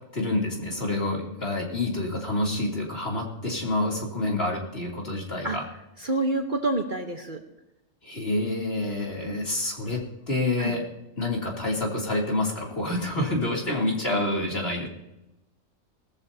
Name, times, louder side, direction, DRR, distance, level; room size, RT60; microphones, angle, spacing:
voice 1, 0.1-5.6 8.0-10.8 11.2-14.9, left 2 dB, 45° left, -2 dB, 3.3 m, -28 dB
voice 2, 6.0-7.4 10.6-10.8, right 2 dB, 40° right, 3 dB, 1.3 m, -27 dB
20.0 x 13.5 x 2.8 m, 0.91 s
omnidirectional pair, 1.4 m